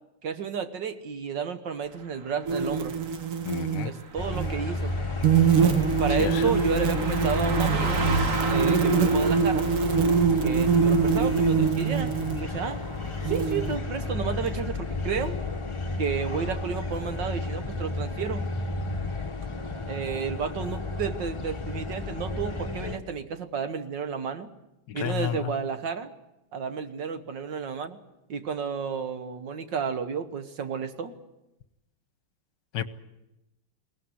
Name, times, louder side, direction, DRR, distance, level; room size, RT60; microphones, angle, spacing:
voice 1, 0.2-3.0 3.8-4.9 6.0-8.1 8.5-9.7 10.4-12.1 12.4-12.8 13.3-15.4 16.0-18.5 19.9-24.5 24.9-26.1 26.5-28.0 28.3-31.1, right 6 dB, 60° right, 1.8 m, -31 dB
Car passing by, 1.9-13.9 14.2-14.4, right 3 dB, 40° right, 1.8 m, -36 dB
sound 1, 2.5-3.9 4.3-4.5 5.2-12.4 13.2-13.8, right 6 dB, 85° right, 2.1 m, -24 dB
voice 2, 3.4-3.9 6.1-6.6 24.9-25.5 32.7-32.8, left 10 dB, 60° left, 1.6 m, -31 dB
sound 2, 4.2-23.0, left 3 dB, 20° left, 1.0 m, -32 dB
22.0 x 18.0 x 9.7 m
omnidirectional pair, 2.4 m